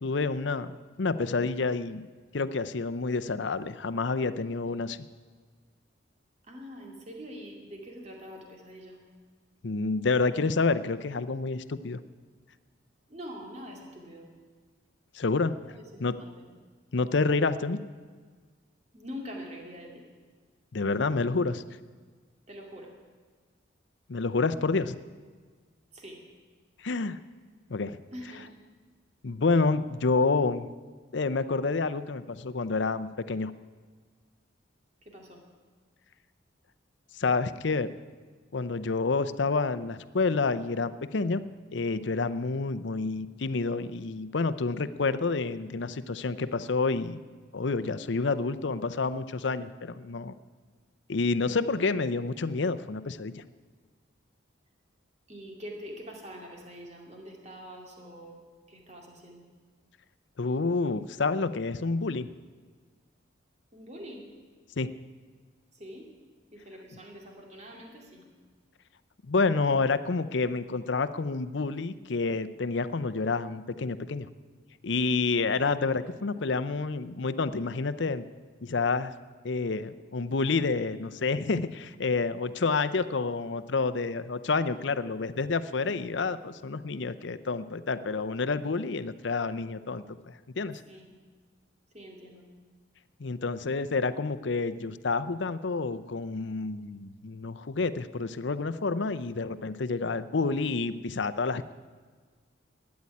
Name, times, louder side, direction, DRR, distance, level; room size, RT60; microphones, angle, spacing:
voice 1, 0.0-0.7 1.0-2.1 2.3-5.1 9.6-12.0 15.1-15.6 16.0-16.1 16.9-17.8 20.7-21.6 24.1-25.0 26.8-27.2 27.7-28.0 29.2-30.7 31.1-33.5 37.1-37.9 38.5-41.4 41.7-47.2 47.5-50.3 51.1-53.4 60.4-62.3 64.8-64.9 69.2-74.3 74.8-78.3 78.6-79.1 79.4-90.8 93.2-101.7, left 4 dB, 70° left, 13 dB, 0.6 m, -29 dB
voice 2, 6.4-9.0 13.1-14.3 15.6-16.3 18.9-20.1 22.5-22.9 25.9-26.2 28.1-28.5 35.0-35.4 55.3-58.4 58.7-59.4 63.7-64.2 65.7-66.1 66.5-68.2 79.9-80.0 90.9-91.1 91.9-92.5, equal, 35° right, 1 dB, 2.4 m, -44 dB
12.5 x 9.6 x 9.7 m, 1.5 s
head